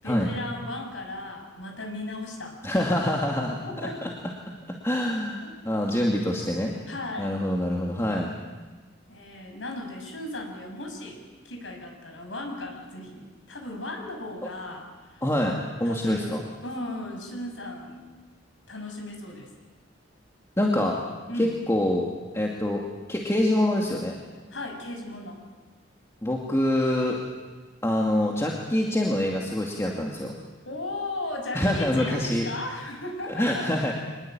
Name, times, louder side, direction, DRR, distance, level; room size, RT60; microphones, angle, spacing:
voice 1, 0.0-3.0 3.6-4.0 5.4-5.5 6.9-7.3 9.1-15.2 15.8-18.0 18.7-19.5 21.3-21.6 24.5-25.4 30.7-33.7, left 2 dB, 80° left, 2 dB, 6.4 m, -36 dB
voice 2, 2.6-3.6 3.8-4.1 4.8-6.7 7.2-8.3 15.2-16.4 20.6-21.0 21.4-22.1 22.3-22.8 23.1-24.1 26.2-27.2 27.8-30.3 31.5-32.5 33.3-33.9, left 1 dB, 15° left, -1 dB, 2.4 m, -25 dB
25.5 x 20.5 x 9.0 m, 1.3 s
head